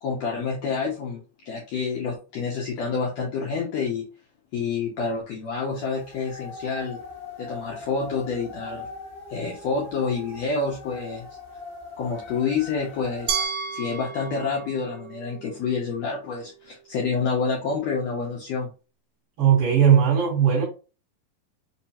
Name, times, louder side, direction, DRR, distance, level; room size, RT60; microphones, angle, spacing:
voice 1, 0.0-4.1 4.5-7.0 7.4-8.9 9.3-11.3 12.0-13.4 13.7-18.7, left 5 dB, 85° left, 1.5 m, -28 dB
sound 1, 5.7-13.4, left 3 dB, 40° left, 0.6 m, -41 dB
Glass, 13.3-16.2, right 6 dB, 90° right, 2.3 m, -33 dB
voice 2, 19.4-20.6, right 8 dB, 55° right, 1.7 m, -18 dB
5.2 x 2.3 x 2.8 m
omnidirectional pair, 3.9 m